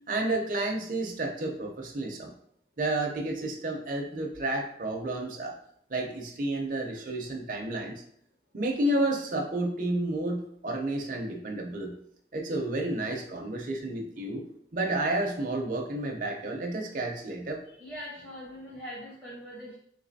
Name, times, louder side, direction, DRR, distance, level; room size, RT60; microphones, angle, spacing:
voice 1, 0.1-2.3 2.8-5.5 5.9-8.0 8.5-11.9 12.3-14.4 14.7-17.6, right 2 dB, 50° right, 1 dB, 0.5 m, -31 dB
voice 2, 17.7-19.8, equal, 10° left, -8 dB, 0.6 m, -42 dB
3.5 x 3.2 x 2.6 m, 0.70 s
head